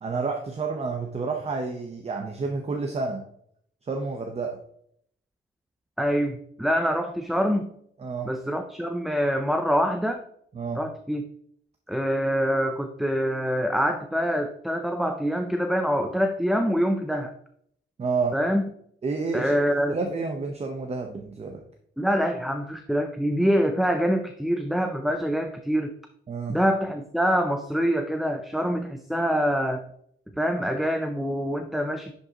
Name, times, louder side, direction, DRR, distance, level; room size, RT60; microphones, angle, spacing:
voice 1, 0.0-3.2 3.8-4.6 8.0-8.3 10.5-10.8 18.0-18.4 19.0-19.5 19.9-21.6 26.3-26.6, right 4 dB, 30° right, 3 dB, 0.8 m, -29 dB
voice 2, 6.0-7.7 8.2-10.2 10.8-11.3 11.9-17.3 18.3-18.6 19.3-20.0 22.0-25.9 26.5-29.8 30.4-32.2, equal, ahead, 6 dB, 0.4 m, -25 dB
10.5 x 5.5 x 2.8 m, 0.68 s
wide cardioid pair, 145°, 20 cm